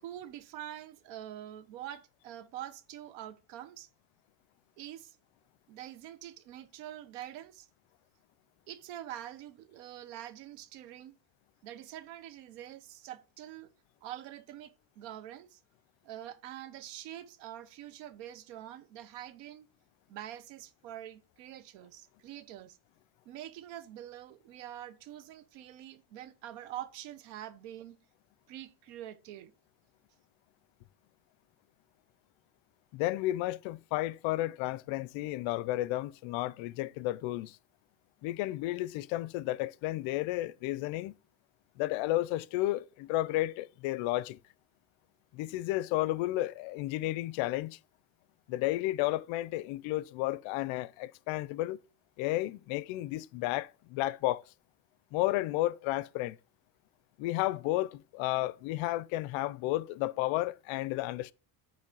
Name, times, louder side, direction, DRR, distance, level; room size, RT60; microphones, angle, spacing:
voice 1, 0.0-3.9 4.8-5.2 5.7-7.7 8.7-11.2 11.6-13.7 14.0-15.6 16.0-19.7 20.1-22.8 23.2-28.0 28.5-29.5, right 12 dB, 90° right, 1.0 m, -45 dB
voice 2, 32.9-37.6 38.2-41.2 41.8-44.4 45.3-47.8 48.5-51.8 52.2-54.4 55.1-56.4 57.2-61.3, left 16 dB, 70° left, 0.6 m, -32 dB
8.6 x 3.2 x 6.0 m
cardioid pair, 125°, 50 cm